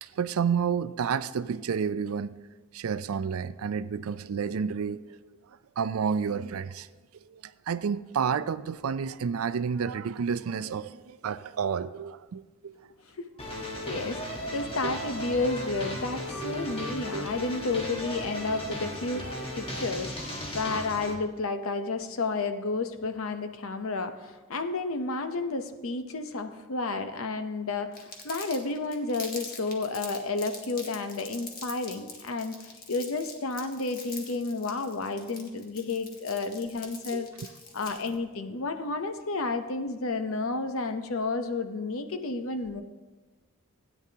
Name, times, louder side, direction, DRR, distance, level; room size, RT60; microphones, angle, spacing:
voice 1, 0.0-2.3 2.7-5.3 5.8-6.9 7.3-12.8 13.9-14.0 14.8-14.9 17.1-17.3 36.5-36.6 37.1-37.2, right 6 dB, 80° right, 0.4 m, -30 dB
sound 1, 13.4-21.1, equal, 25° left, 1.3 m, -35 dB
voice 2, 13.9-14.2 14.5-19.3 19.6-37.3 37.7-42.8, left 3 dB, 75° left, 0.8 m, -31 dB
Crumpling crinkling, 27.9-38.1, left 4 dB, 45° left, 1.4 m, -43 dB
16.5 x 9.4 x 2.8 m
head